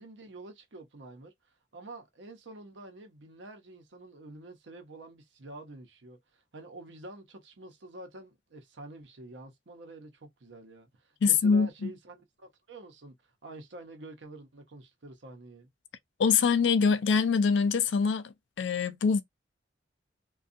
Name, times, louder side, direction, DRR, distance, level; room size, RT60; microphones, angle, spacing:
voice 1, 0.0-15.7, right 2 dB, 85° right, 0.7 m, -48 dB
voice 2, 11.2-11.9 16.2-19.2, left 5 dB, 85° left, 0.4 m, -24 dB
2.5 x 2.3 x 2.6 m
head